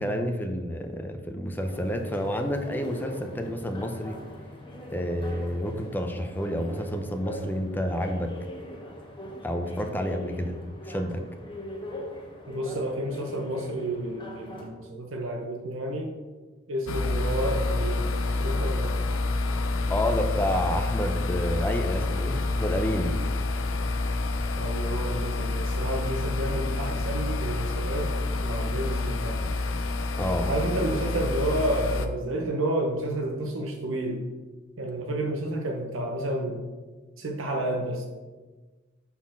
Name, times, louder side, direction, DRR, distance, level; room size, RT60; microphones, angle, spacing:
voice 1, 0.0-4.2 4.9-8.3 9.4-11.2 19.9-23.1 30.2-30.5, equal, 10° left, 4 dB, 0.6 m, -29 dB
sound 1, 1.6-14.7, left 1 dB, 25° left, 1.1 m, -41 dB
voice 2, 12.5-16.1 16.7-18.1 18.4-19.0 24.6-28.1 28.4-29.5 30.5-34.2 34.8-36.7 37.2-38.1, right 1 dB, 70° right, 2 dB, 0.8 m, -30 dB
sound 2, 16.9-32.1, left 2 dB, 80° left, 0.6 m, -28 dB
5.6 x 4.4 x 6.0 m, 1.3 s
head